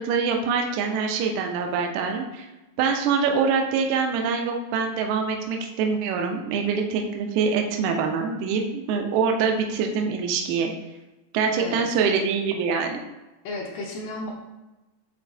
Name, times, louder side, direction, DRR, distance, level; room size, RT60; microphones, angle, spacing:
voice 1, 0.0-2.5 2.8-10.7 11.3-13.0, right 5 dB, 80° right, 3 dB, 1.7 m, -24 dB
voice 2, 13.4-14.3, left 2 dB, 75° left, -1 dB, 2.3 m, -33 dB
8.8 x 4.0 x 2.7 m, 1.0 s
omnidirectional pair, 4.1 m